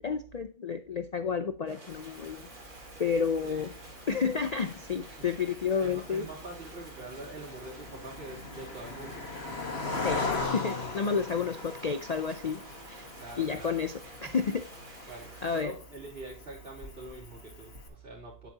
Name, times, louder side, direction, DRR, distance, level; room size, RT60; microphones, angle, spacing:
voice 1, 0.0-2.5 3.0-3.7 4.1-6.3 10.0-10.2 10.5-12.6 12.9-13.1 13.4-14.6 15.0-15.1 15.4-15.7, left 6 dB, 80° left, 9 dB, 0.3 m, -30 dB
sound 1, 1.7-15.6, right 2 dB, 80° right, 2.8 m, -50 dB
Cricket, 1.9-17.9, left 3 dB, 50° left, 1.9 m, -40 dB
voice 2, 3.4-3.8 5.1-9.4 13.2-13.9 15.1-18.5, right 3 dB, 45° right, -10 dB, 3.3 m, -45 dB
9.3 x 8.2 x 2.8 m, 0.38 s
omnidirectional pair, 1.4 m